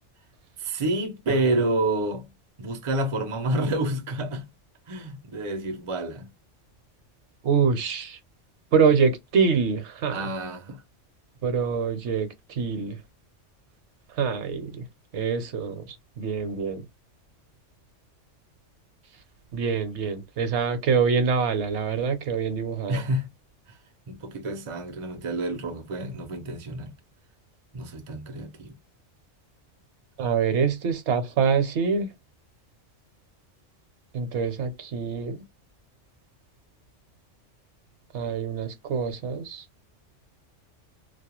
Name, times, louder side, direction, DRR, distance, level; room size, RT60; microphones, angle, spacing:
voice 1, 0.6-2.3 2.6-4.4 4.9-6.3 10.1-10.8 22.9-23.3 24.1-26.9 27.7-28.8, right 2 dB, 45° right, 0.4 m, -28 dB
voice 2, 7.4-8.2 8.7-10.3 11.4-13.0 14.2-14.8 15.1-16.8 19.5-23.0 30.2-32.1 34.1-35.4 38.1-39.6, right 5 dB, 70° right, 0.9 m, -25 dB
2.3 x 2.1 x 2.9 m
omnidirectional pair, 1.3 m